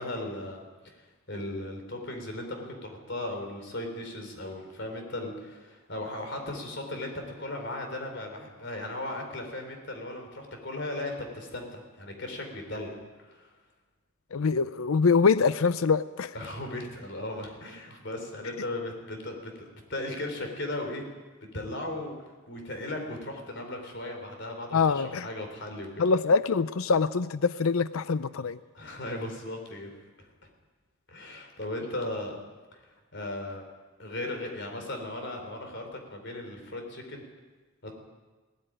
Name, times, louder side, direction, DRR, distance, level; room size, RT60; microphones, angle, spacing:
voice 1, 0.0-13.5 16.3-21.0 21.4-22.1 22.5-26.0 28.7-29.9 30.2-30.5 31.1-32.4 32.7-32.8 33.1-33.6 34.0-37.2 37.8-37.9, left 1 dB, 55° left, 4 dB, 4.2 m, -37 dB
voice 2, 14.3-16.3 24.7-25.3 26.0-28.6, left 5 dB, 85° left, 15 dB, 0.6 m, -24 dB
18.0 x 14.0 x 10.0 m, 1.3 s
head